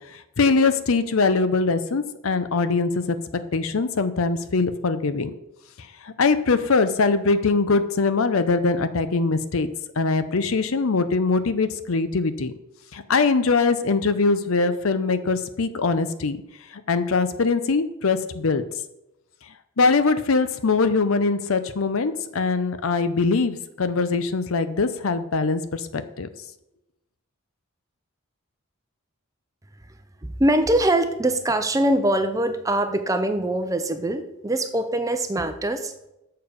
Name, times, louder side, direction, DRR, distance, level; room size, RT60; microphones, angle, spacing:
voice 1, 0.1-3.2 3.5-5.3 5.8-9.7 10.0-12.5 12.9-16.4 16.7-18.6 19.8-26.3, left 4 dB, 70° left, 12 dB, 0.6 m, -22 dB
voice 2, 30.2-35.9, right 1 dB, 15° right, 8 dB, 0.6 m, -23 dB
6.8 x 6.7 x 5.2 m, 0.89 s
head